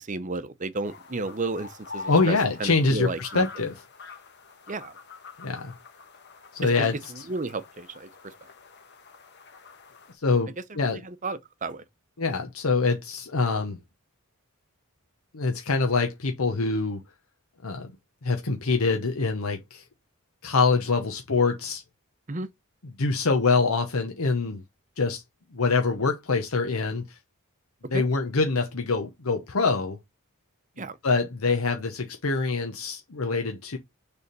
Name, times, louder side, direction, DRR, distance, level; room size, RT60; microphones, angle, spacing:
voice 1, 0.0-3.4 4.7-4.9 6.6-8.3 10.8-11.8 22.3-22.5 27.9-28.0 30.8-31.0, right 3 dB, 35° right, 0.7 m, -33 dB
sound 1, 0.8-10.1, left 4 dB, 50° left, 1.3 m, -45 dB
voice 2, 2.1-3.7 5.4-5.8 6.5-7.2 10.2-11.0 12.2-13.8 15.3-17.0 17.6-17.9 18.2-19.8 20.4-21.8 23.0-24.6 25.0-25.2 25.5-27.0 27.9-30.0 31.0-33.8, left 4 dB, 75° left, 0.9 m, -25 dB
6.8 x 3.5 x 5.3 m
head